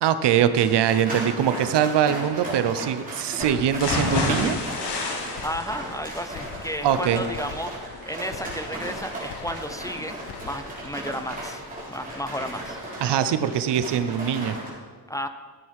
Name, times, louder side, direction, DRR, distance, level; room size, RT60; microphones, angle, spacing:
voice 1, 0.0-4.6 6.8-7.2 13.0-14.6, right 9 dB, 85° right, 12 dB, 0.7 m, -22 dB
sound 1, 0.6-14.7, right 1 dB, 20° right, 3.5 m, -35 dB
sound 2, 3.4-4.1 4.4-5.1 5.4-6.1 6.3-7.0 7.3-8.0 8.3-9.0 9.3-10.0 10.3-11.0, left 8 dB, 70° left, 0.8 m, -43 dB
sound 3, 3.8-11.7 12.1-12.2 12.6-12.7, left 3 dB, 85° left, 1.8 m, -32 dB
voice 2, 5.4-10.2 10.4-11.6 11.9-12.8 15.1-15.3, equal, 10° left, 8 dB, 0.5 m, -33 dB
14.0 x 7.4 x 4.8 m, 1.4 s
wide cardioid pair, 130°, 40 cm